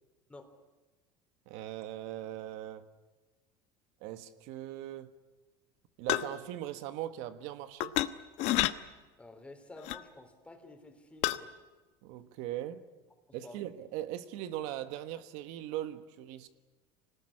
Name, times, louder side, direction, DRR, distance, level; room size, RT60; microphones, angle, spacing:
voice 1, 1.5-2.9 4.0-5.1 6.0-7.9 12.0-12.8 13.3-16.5, right 13 dB, 70° right, 10 dB, 1.4 m, -40 dB
sound 1, 6.1-6.4 7.8-8.1 8.4-8.7 9.8-10.0 11.2-11.4, left 16 dB, 60° left, 1.1 m, -28 dB
voice 2, 9.2-11.5 13.4-13.6, left 2 dB, 10° left, 6 dB, 3.5 m, -51 dB
26.0 x 19.5 x 9.9 m, 1.2 s
cardioid pair, 140°, 13 cm